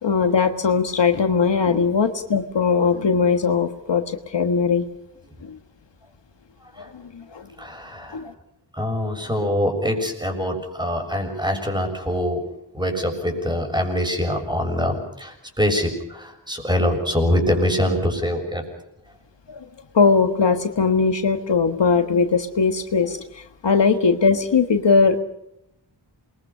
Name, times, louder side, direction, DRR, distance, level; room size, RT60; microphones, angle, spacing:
voice 1, 0.0-4.8 5.4-5.6 6.8-7.5 8.1-8.3 19.5-19.7 19.9-25.2, left 5 dB, 70° left, 7 dB, 1.6 m, -20 dB
voice 2, 7.6-8.2 8.8-12.4 12.7-18.6, left 1 dB, 10° right, 3 dB, 6.8 m, -24 dB
28.0 x 22.0 x 5.6 m, 0.83 s
wide cardioid pair, 75°, 44 cm